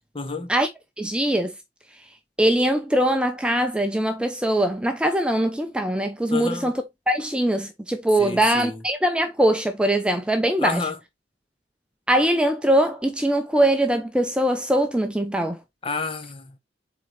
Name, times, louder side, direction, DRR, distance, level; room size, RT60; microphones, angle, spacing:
voice 1, 0.1-0.5 6.3-6.7 8.2-8.8 10.6-11.0 15.8-16.6, left 4 dB, 30° left, 1.0 m, -29 dB
voice 2, 1.0-1.5 2.4-6.7 7.1-10.8 12.1-15.6, right 1 dB, 5° right, 0.6 m, -22 dB
7.7 x 3.9 x 3.2 m
head